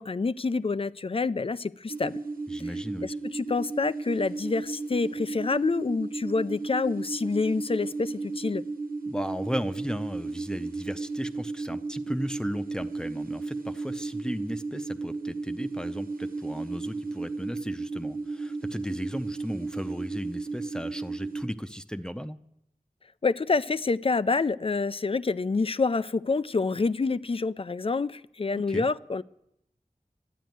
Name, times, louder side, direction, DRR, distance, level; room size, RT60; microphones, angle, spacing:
voice 1, 0.0-2.2 3.0-8.6 23.2-29.2, left 4 dB, 40° left, 16 dB, 0.4 m, -27 dB
sound 1, 1.9-21.5, right 3 dB, 80° right, 1.3 m, -34 dB
voice 2, 2.5-3.2 9.1-22.4 28.5-28.9, equal, 5° left, 9 dB, 0.7 m, -36 dB
12.0 x 9.2 x 9.2 m, 0.81 s
wide cardioid pair, 60°, 15 cm